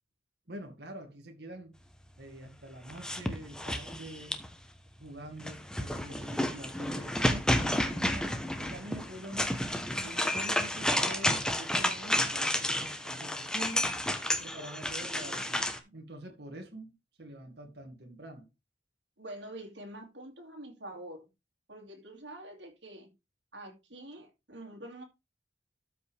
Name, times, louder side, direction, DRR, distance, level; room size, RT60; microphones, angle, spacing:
voice 1, 0.5-1.7 2.2-4.4 5.0-9.5 10.0-13.9 14.4-18.5, right 1 dB, 60° right, 2.3 m, -45 dB
sound 1, 2.9-4.6 5.4-15.8, left 1 dB, 5° left, 1.0 m, -31 dB
voice 2, 19.2-21.3 21.7-23.1 23.5-25.0, right 1 dB, 80° right, 2.6 m, -46 dB
13.0 x 5.4 x 3.5 m
head